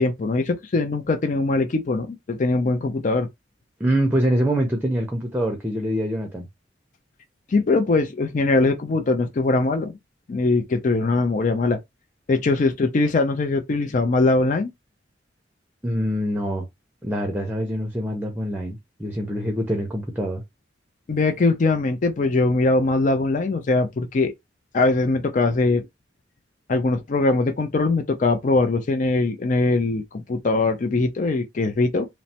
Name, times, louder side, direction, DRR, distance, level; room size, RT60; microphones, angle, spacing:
voice 1, 0.0-3.3 7.5-9.9 10.3-11.8 12.3-14.7 21.1-24.3 24.7-25.8 26.7-32.1, left 3 dB, 45° left, 0.4 m, -21 dB
voice 2, 3.8-6.5 15.8-16.7 17.0-20.4, equal, 10° right, 0.6 m, -24 dB
3.1 x 2.0 x 2.8 m
head